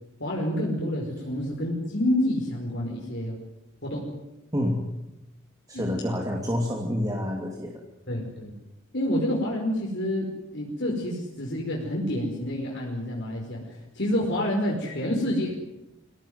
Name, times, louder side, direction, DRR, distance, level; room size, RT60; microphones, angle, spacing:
voice 1, 0.2-3.4 3.8-4.0 5.7-5.9 8.1-8.5 8.9-15.5, left 1 dB, 55° left, -2 dB, 5.2 m, -28 dB
voice 2, 4.5-4.9 5.7-7.8, equal, 15° right, 0 dB, 2.7 m, -28 dB
25.5 x 18.0 x 9.6 m, 0.95 s
head